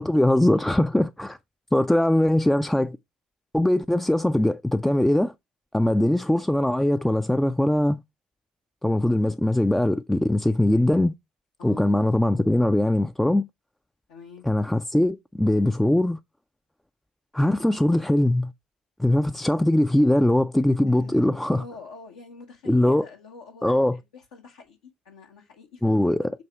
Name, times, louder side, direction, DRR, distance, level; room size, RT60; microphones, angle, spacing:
voice 1, 0.0-1.4 1.7-3.0 3.5-5.3 5.7-8.0 8.8-11.1 11.6-13.4 14.4-16.2 17.3-18.5 19.0-21.6 22.7-23.1 23.6-24.0 25.8-26.3, left 1 dB, 5° left, 0.4 m, -21 dB
voice 2, 11.6-11.9 14.1-14.5 20.9-26.3, left 5 dB, 65° left, 0.9 m, -45 dB
7.7 x 2.8 x 4.4 m
figure-of-eight pair, 50°, 4 cm